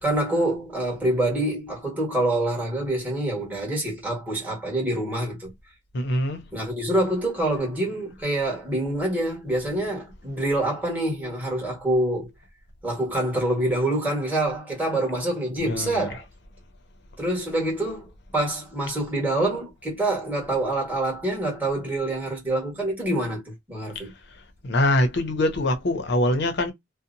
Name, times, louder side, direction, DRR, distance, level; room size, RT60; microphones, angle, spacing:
voice 1, 0.0-5.5 6.5-12.3 12.8-16.2 17.2-24.1, right 1 dB, 10° right, 1.4 m, -26 dB
voice 2, 5.9-6.5 15.6-16.1 23.9-24.1 24.6-26.7, left 1 dB, 55° left, 0.6 m, -23 dB
2.7 x 2.0 x 2.6 m
head